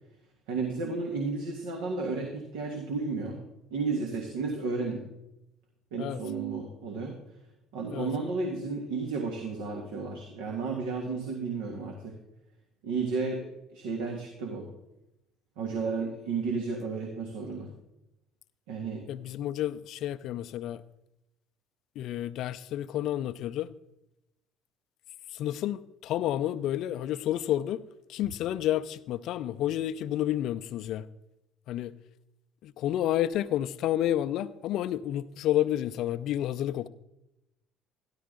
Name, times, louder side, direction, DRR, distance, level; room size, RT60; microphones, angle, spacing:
voice 1, 0.5-3.4 3.7-5.0 5.9-7.2 7.7-12.1 12.8-13.5 13.7-14.7 15.6-17.7 18.7-19.0, right 4 dB, 80° right, 1.6 m, -32 dB
voice 2, 19.1-20.8 22.0-23.7 25.3-27.8 28.1-31.1 31.7-31.9 32.6-36.9, left 12 dB, 65° left, 0.5 m, -30 dB
13.0 x 11.5 x 3.8 m
hypercardioid pair, 65°, 0 cm